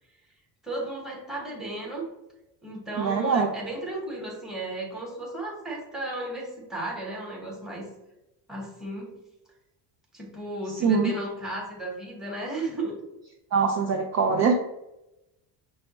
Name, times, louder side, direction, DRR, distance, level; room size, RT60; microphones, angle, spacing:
voice 1, 0.6-2.1 2.6-7.9 8.5-9.1 10.1-13.0, right 1 dB, ahead, -3 dB, 1.0 m, -34 dB
voice 2, 3.0-3.5 10.8-11.1 13.5-14.5, right 5 dB, 40° right, 1 dB, 0.4 m, -23 dB
5.5 x 2.2 x 4.0 m, 0.92 s
cardioid pair, 145°, 44 cm